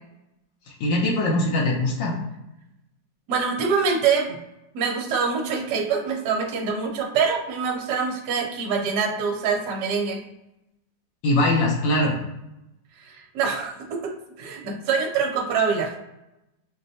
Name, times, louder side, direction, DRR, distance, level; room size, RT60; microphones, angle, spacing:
voice 1, 0.7-2.2 11.2-12.2, left 1 dB, 80° left, -3 dB, 1.5 m, -22 dB
voice 2, 3.3-4.4 4.7-10.2 13.1-14.1 14.4-15.9, right 5 dB, 70° right, 2 dB, 1.2 m, -25 dB
6.2 x 2.2 x 2.6 m, 0.89 s
omnidirectional pair, 2.1 m